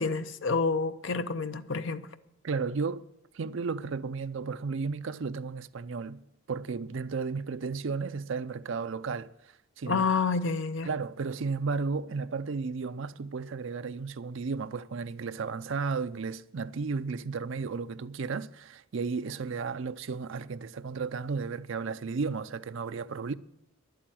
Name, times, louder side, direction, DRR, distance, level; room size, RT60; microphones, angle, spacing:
voice 1, 0.0-2.1 9.9-10.9, left 4 dB, 60° left, 0.7 m, -28 dB
voice 2, 2.4-3.0 3.3-9.3 9.8-10.1 10.8-23.3, right 4 dB, 60° right, 0.5 m, -33 dB
11.0 x 8.7 x 9.0 m
head